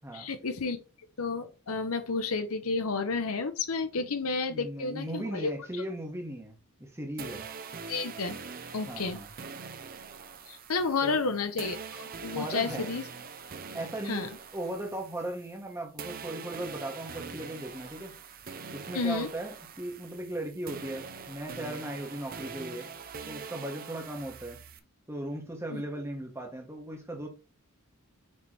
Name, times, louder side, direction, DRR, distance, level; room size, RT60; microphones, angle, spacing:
voice 1, 0.1-0.8 1.2-5.5 7.9-8.4 8.7-9.2 10.5-13.0 14.1-14.3 18.9-19.3 25.7-25.8, left 4 dB, 75° left, 0.9 m, -31 dB
voice 2, 4.5-7.5 8.9-9.3 11.0-11.2 12.3-12.9 13.7-18.1 18.7-22.9 23.3-24.6 25.1-27.3, right 1 dB, 10° right, 1.3 m, -37 dB
sound 1, 7.2-15.7 16.0-24.8, right 5 dB, 40° right, 0.6 m, -43 dB
6.5 x 3.3 x 4.4 m
head